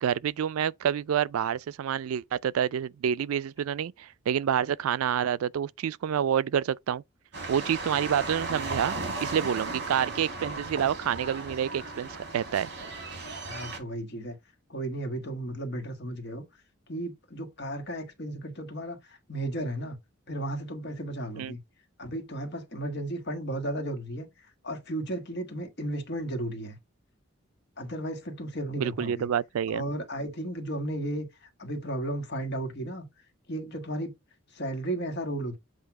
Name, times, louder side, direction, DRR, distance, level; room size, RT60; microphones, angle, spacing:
voice 1, 0.0-7.0 7.5-12.7 21.4-21.5 28.8-29.8, right 8 dB, 85° right, 0.3 m, -28 dB
sound 1, 7.3-13.8, right 3 dB, 55° right, 2.5 m, -36 dB
voice 2, 13.5-14.3 14.7-16.4 16.9-20.0 20.3-21.6 22.0-24.3 24.6-26.8 27.8-29.3 29.7-31.3 31.6-33.1 33.5-34.1 34.5-35.6, right 1 dB, 50° left, 1.5 m, -34 dB
8.0 x 2.8 x 5.8 m
head